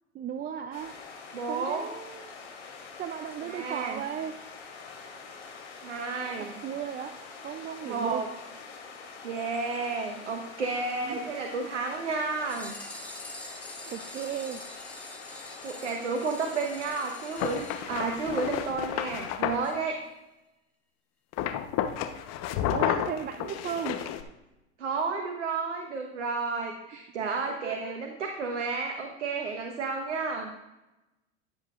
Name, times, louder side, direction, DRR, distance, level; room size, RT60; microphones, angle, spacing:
voice 1, 0.1-1.0 1.5-2.3 3.0-4.4 6.4-8.3 11.0-11.3 13.9-14.6 22.7-24.0 27.6-27.9, right 9 dB, 25° right, 9 dB, 0.5 m, -36 dB
sound 1, 0.7-18.7, left 5 dB, 90° left, 3.0 m, -45 dB
voice 2, 1.3-1.9 3.4-4.0 5.8-6.6 7.8-8.3 9.2-12.7 15.6-20.0 24.8-30.5, right 4 dB, 90° right, 3 dB, 1.2 m, -32 dB
sound 2, 12.3-18.5 18.8-18.9 19.1-19.2 19.6-19.7 20.0-20.1, left 1 dB, 5° left, 2.9 m, -45 dB
sound 3, 17.4-19.7 21.3-24.2, left 11 dB, 50° left, 1.0 m, -31 dB
16.0 x 7.9 x 2.5 m, 0.98 s
hypercardioid pair, 95°, 34 cm